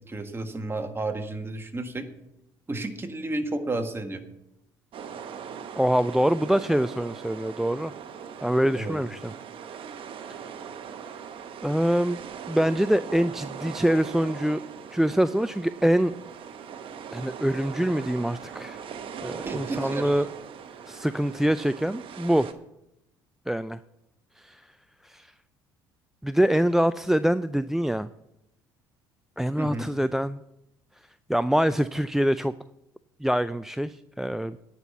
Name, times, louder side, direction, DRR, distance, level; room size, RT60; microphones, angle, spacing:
voice 1, 0.1-2.1 2.7-4.2 8.7-9.0 19.4-20.1 29.6-29.9, right 2 dB, 20° right, 6 dB, 1.6 m, -32 dB
sound 1, 4.9-22.5, right 7 dB, 55° right, 1.0 m, -40 dB
voice 2, 5.8-7.9 8.4-9.3 11.6-12.2 12.5-14.6 14.9-16.1 17.1-18.8 19.2-20.3 20.9-22.5 23.5-23.8 24.4-24.7 25.0-25.3 26.2-28.1 29.4-30.4 31.3-32.5 33.2-34.6, equal, 5° right, 14 dB, 0.3 m, -24 dB
9.6 x 5.8 x 8.2 m, 0.85 s
hypercardioid pair, 60°, 11 cm